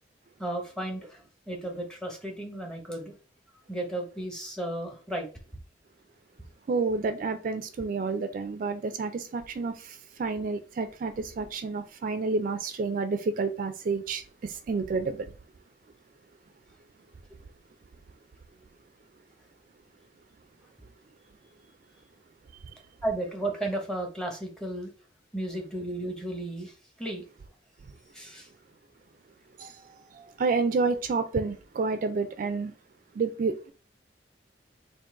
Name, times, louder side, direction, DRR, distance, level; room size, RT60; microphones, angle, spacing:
voice 1, 0.4-3.1 3.7-5.3 23.0-24.9 25.3-27.2 28.1-28.5, right 1 dB, 5° left, 0.8 m, -34 dB
voice 2, 6.7-15.3 29.6-32.7 33.1-33.7, right 4 dB, 50° right, 0.3 m, -30 dB
3.8 x 2.5 x 3.6 m
head